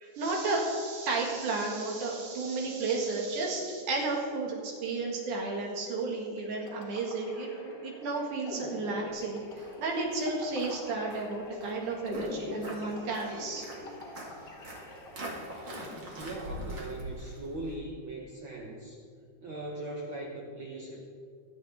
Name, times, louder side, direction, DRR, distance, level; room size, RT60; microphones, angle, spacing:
voice 1, 0.0-14.2 14.9-15.0, right 3 dB, 80° right, -1 dB, 3.4 m, -33 dB
sound 1, 6.4-16.8, left 2 dB, 45° left, 1.6 m, -44 dB
Walk footsteps, 9.1-17.7, right 1 dB, 40° right, 2.3 m, -44 dB
voice 2, 16.2-19.0 19.4-21.1, right 2 dB, 55° right, -1 dB, 1.4 m, -40 dB
22.5 x 7.9 x 3.6 m, 2.3 s
omnidirectional pair, 3.5 m